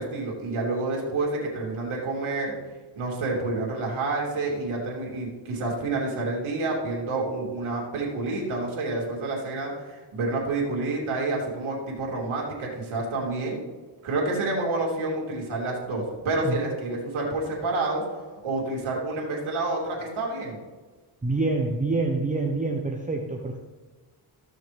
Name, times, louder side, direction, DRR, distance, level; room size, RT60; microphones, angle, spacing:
voice 1, 0.0-2.5 2.9-13.6 14.0-18.0 18.4-20.6, right 2 dB, 80° right, -3 dB, 3.1 m, -28 dB
voice 2, 21.2-23.6, right 3 dB, 15° right, 1 dB, 0.9 m, -26 dB
15.0 x 6.4 x 3.5 m, 1.3 s
cardioid pair, 110°, 48 cm